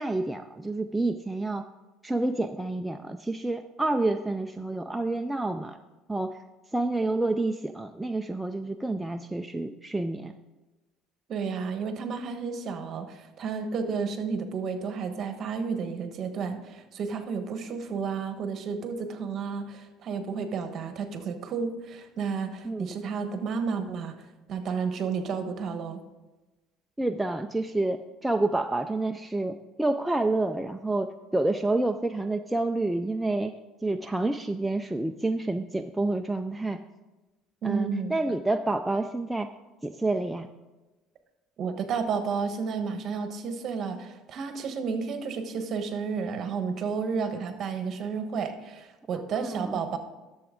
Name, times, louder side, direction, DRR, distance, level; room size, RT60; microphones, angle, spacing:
voice 1, 0.0-1.7 2.0-5.8 6.1-6.4 6.7-10.3 22.6-23.0 27.0-33.5 33.8-36.8 37.6-39.5 39.8-40.5 49.4-49.8, right 2 dB, 5° right, 5 dB, 0.3 m, -28 dB
voice 2, 11.3-24.1 24.5-26.0 37.6-38.1 41.6-50.0, right 5 dB, 40° right, 7 dB, 1.1 m, -31 dB
11.5 x 7.0 x 3.7 m, 1.1 s
cardioid pair, 135°, 0 cm